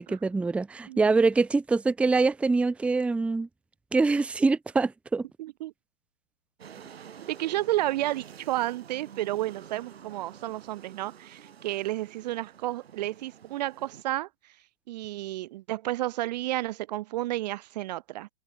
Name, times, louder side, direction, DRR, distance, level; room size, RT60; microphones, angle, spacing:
voice 1, 0.0-3.5 3.9-5.2, right 3 dB, 5° right, 0.8 m, -24 dB
voice 2, 5.4-5.7 7.3-14.3 14.9-18.3, right 15 dB, 40° right, 0.9 m, -31 dB
sound 1, 6.6-14.0, right 8 dB, 70° right, 5.1 m, -49 dB
hypercardioid pair, 130°, 32 cm